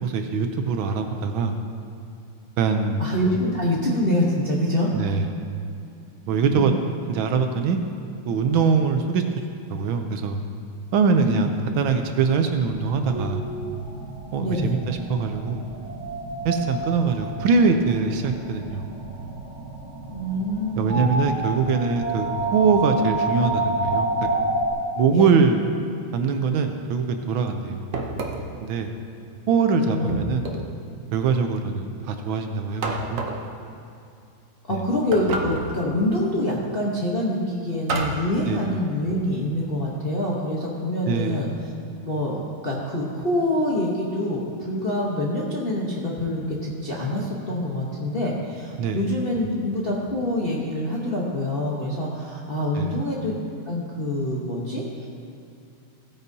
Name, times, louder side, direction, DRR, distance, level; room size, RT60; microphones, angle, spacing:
voice 1, 0.0-1.5 2.6-3.0 4.9-5.3 6.3-6.7 7.0-7.8 8.3-9.2 9.7-10.4 10.9-13.4 14.3-15.6 16.4-18.9 20.8-24.3 25.0-25.6 26.1-27.9 28.6-28.9 29.5-30.5 31.1-33.3 34.7-34.8 38.5-38.6 41.1-41.5 48.7-49.0 52.8-52.9, right 5 dB, 75° right, 6 dB, 1.4 m, -23 dB
voice 2, 3.0-4.9 5.2-5.3 6.5-6.8 11.1-11.5 14.4-14.8 20.0-21.2 25.1-25.4 29.9-30.2 34.7-41.5 42.0-53.3 53.7-55.1, left 1 dB, 45° left, -5 dB, 0.8 m, -26 dB
sound 1, 12.6-24.7, right 2 dB, 30° right, 2.7 m, -29 dB
sound 2, 27.9-28.6 30.1-30.8 32.8-33.5 35.1-35.8 37.9-38.3, right 3 dB, 60° right, 0.9 m, -29 dB
16.0 x 9.0 x 2.7 m, 2.6 s
omnidirectional pair, 2.4 m